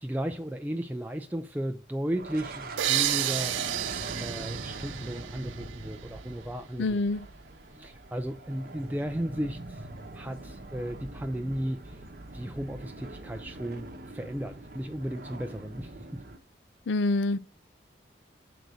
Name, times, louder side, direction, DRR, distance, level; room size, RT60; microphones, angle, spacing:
voice 1, 0.0-3.6 4.2-6.9 7.7-9.9 10.1-12.0 12.3-16.2, right 1 dB, 10° right, 0.3 m, -35 dB
sound 1, 2.1-16.4, right 2 dB, 50° right, 0.8 m, -42 dB
sound 2, 2.8-6.3, right 14 dB, 80° right, 0.4 m, -31 dB
voice 2, 6.8-7.2 16.9-17.4, left 2 dB, 75° left, 0.5 m, -26 dB
8.0 x 3.9 x 6.2 m
head